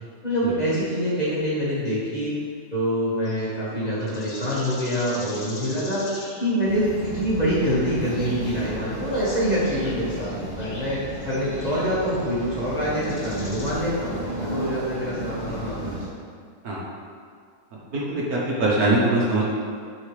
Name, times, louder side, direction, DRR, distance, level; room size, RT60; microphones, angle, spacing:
voice 1, 0.2-2.3 2.7-16.0, equal, 25° left, -10 dB, 1.9 m, -25 dB
sound 1, 2.1-2.2 3.2-3.4 3.8-6.5 7.0-7.3 8.1-8.5 9.6-12.6 12.9-13.7, left 2 dB, 60° left, 1.6 m, -42 dB
sound 2, 6.6-16.1, equal, 30° right, 1.8 m, -34 dB
voice 2, 17.9-19.4, right 2 dB, 70° right, -4 dB, 1.6 m, -22 dB
10.5 x 4.2 x 3.2 m, 2.1 s
omnidirectional pair, 1.7 m